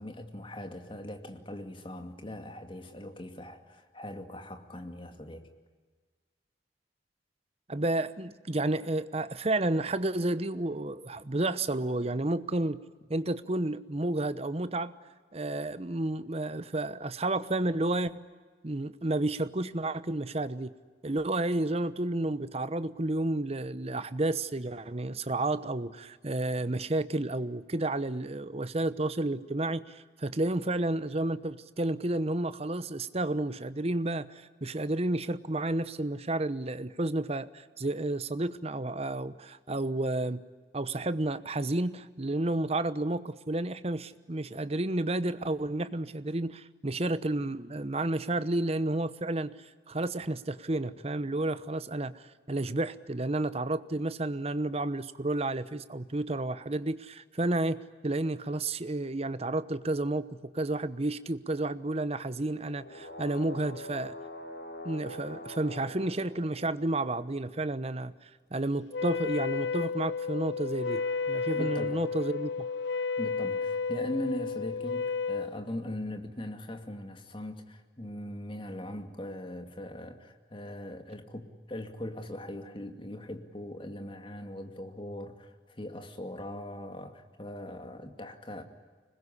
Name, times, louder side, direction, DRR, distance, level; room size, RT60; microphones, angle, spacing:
voice 1, 0.0-5.5 71.6-72.0 73.2-88.6, left 1 dB, 30° left, 6 dB, 2.4 m, -40 dB
voice 2, 7.7-12.8 13.1-14.9 15.3-18.2 18.6-20.7 21.0-40.4 40.7-49.5 49.9-64.1 64.8-72.5, right 2 dB, 35° right, 14 dB, 1.0 m, -31 dB
sound 1, 62.6-67.2 70.6-73.5, left 1 dB, 75° left, 5.2 m, -46 dB
Wind instrument woodwind instrument, 68.9-75.5, left 5 dB, 90° left, 0.9 m, -32 dB
25.5 x 21.0 x 9.9 m, 1.4 s
head